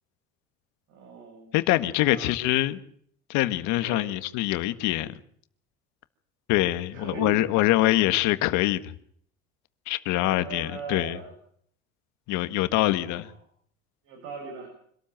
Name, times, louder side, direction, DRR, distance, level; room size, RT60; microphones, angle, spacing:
voice 1, 0.9-2.3 3.8-4.1 6.9-7.8 10.1-11.3 12.8-13.2 14.0-14.7, right 4 dB, 80° right, 7.5 m, -40 dB
voice 2, 1.5-2.8 3.3-5.1 6.5-8.8 9.9-11.2 12.3-13.3, left 16 dB, 80° left, 1.6 m, -24 dB
25.5 x 13.0 x 8.9 m
cardioid pair, 115°, 29 cm